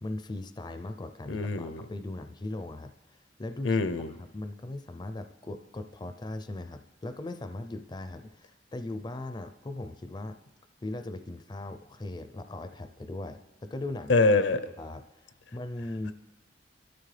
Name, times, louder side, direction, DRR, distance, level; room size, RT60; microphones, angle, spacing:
voice 1, 0.0-10.4 10.8-14.1 14.8-16.1, left 2 dB, 25° left, 9 dB, 0.4 m, -39 dB
voice 2, 1.3-1.9 3.6-4.1 14.1-14.6, left 3 dB, 75° left, 12 dB, 0.7 m, -24 dB
26.0 x 13.0 x 3.3 m, 1.1 s
head